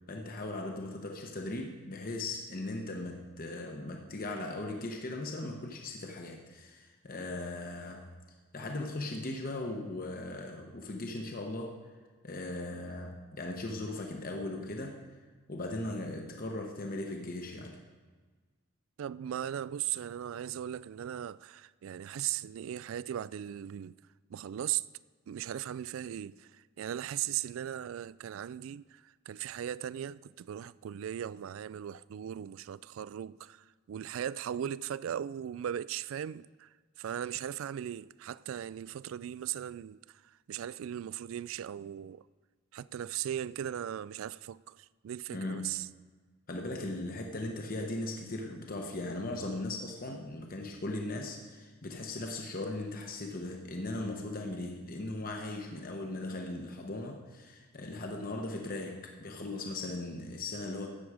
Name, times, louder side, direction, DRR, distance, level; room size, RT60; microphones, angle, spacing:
voice 1, 0.1-8.2 8.5-11.9 12.2-15.0 15.5-17.8 45.3-45.8 46.5-60.9, left 2 dB, 45° left, 1.0 m, -38 dB
voice 2, 19.0-24.0 24.3-24.8 25.3-36.7 37.0-42.2 42.7-45.9, right 10 dB, 75° right, 0.3 m, -38 dB
14.0 x 8.8 x 4.9 m
head